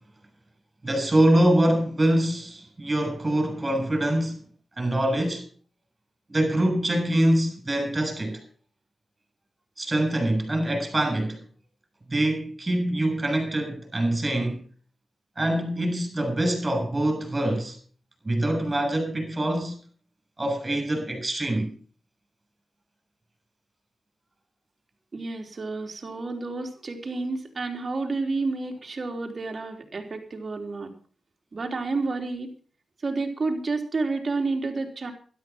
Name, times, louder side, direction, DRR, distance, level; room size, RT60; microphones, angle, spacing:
voice 1, 0.8-4.4 4.8-5.4 6.3-8.4 9.8-11.4 12.1-14.6 15.4-17.8 18.2-19.7 20.4-21.7, right 1 dB, 25° right, 7.4 m, -24 dB
voice 2, 25.1-30.9 31.5-32.5 33.0-35.1, right 3 dB, 45° right, 3.7 m, -30 dB
13.0 x 12.5 x 6.0 m
cardioid pair, 60°, 0 cm